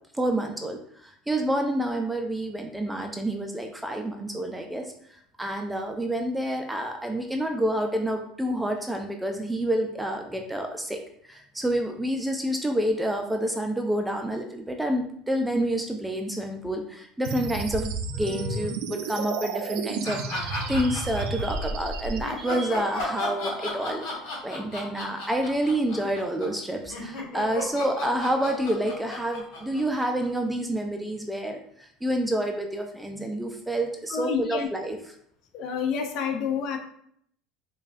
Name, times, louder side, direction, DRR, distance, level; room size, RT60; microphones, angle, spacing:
voice 1, 0.2-4.9 5.4-24.1 24.4-35.0, right 1 dB, 5° right, 3 dB, 0.4 m, -28 dB
sound 1, 17.2-22.2, right 4 dB, 80° right, 0.5 m, -32 dB
sound 2, 20.0-21.6 22.2-30.5, left 2 dB, 80° left, 1.3 m, -34 dB
voice 2, 34.1-34.7 35.5-36.8, left 6 dB, 55° left, 5 dB, 0.5 m, -28 dB
5.2 x 2.3 x 2.4 m, 0.67 s
supercardioid pair, 125°, 0 cm